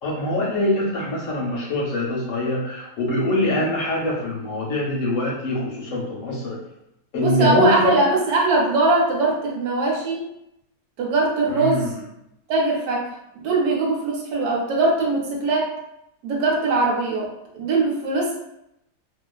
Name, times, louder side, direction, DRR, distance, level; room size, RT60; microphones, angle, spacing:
voice 1, 0.0-6.6 7.1-7.9 11.5-11.9, left 1 dB, 70° left, -3 dB, 0.9 m, -24 dB
voice 2, 7.1-10.2 11.0-11.9 12.5-13.1 13.4-15.7 16.2-18.4, right 2 dB, 85° right, -1 dB, 1.1 m, -21 dB
2.4 x 2.3 x 2.2 m, 0.82 s
omnidirectional pair, 1.6 m